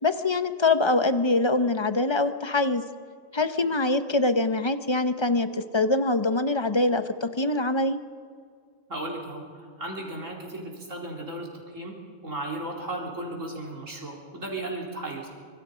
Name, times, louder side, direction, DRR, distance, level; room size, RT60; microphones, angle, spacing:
voice 1, 0.0-2.8 3.3-8.0, left 2 dB, 25° left, 10 dB, 0.8 m, -24 dB
voice 2, 8.9-11.9 12.2-15.3, right 1 dB, 75° right, -2 dB, 4.5 m, -35 dB
25.5 x 24.5 x 5.2 m, 2.1 s
omnidirectional pair, 1.3 m